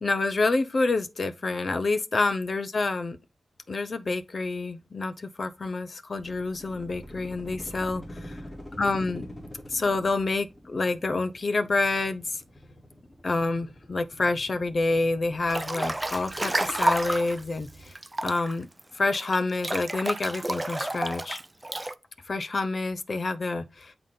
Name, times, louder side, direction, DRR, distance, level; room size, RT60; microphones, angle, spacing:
voice 1, 0.0-3.2 3.7-8.4 8.8-9.3 9.7-12.4 13.2-17.9 18.2-18.7 18.9-21.4 22.3-23.9, left 3 dB, 50° left, 0.6 m, -28 dB
sound 1, 6.2-17.9, equal, 15° left, 3.6 m, -46 dB
Breathing / Bathtub (filling or washing) / Splash splatter, 15.5-17.4 18.0-21.9, right 1 dB, 15° right, 0.4 m, -30 dB
8.1 x 3.9 x 3.7 m
wide cardioid pair, 105°, 0 cm